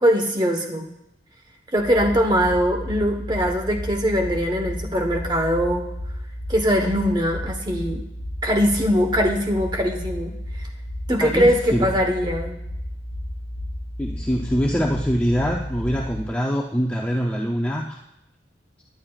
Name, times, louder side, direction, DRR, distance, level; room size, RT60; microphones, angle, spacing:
voice 1, 0.0-0.9 1.7-5.8 6.5-8.0 8.4-10.3 10.6-10.7 11.1-12.6, equal, 25° right, 3 dB, 1.1 m, -21 dB
sound 1, 1.8-16.2, left 1 dB, 75° right, 2.2 m, -32 dB
voice 2, 11.2-11.9 14.0-18.0, equal, 10° left, -1 dB, 0.6 m, -24 dB
17.5 x 10.5 x 2.4 m, 0.86 s
head